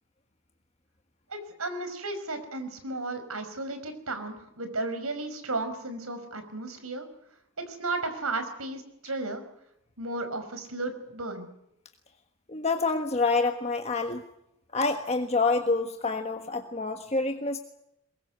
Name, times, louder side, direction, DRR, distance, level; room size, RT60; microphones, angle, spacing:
voice 1, 1.3-7.1 7.7-9.4 10.0-11.5, right 2 dB, 80° right, 9 dB, 5.4 m, -34 dB
voice 2, 12.5-14.2 14.7-17.6, left 3 dB, 30° left, 5 dB, 1.4 m, -27 dB
23.0 x 22.0 x 8.1 m, 0.81 s
head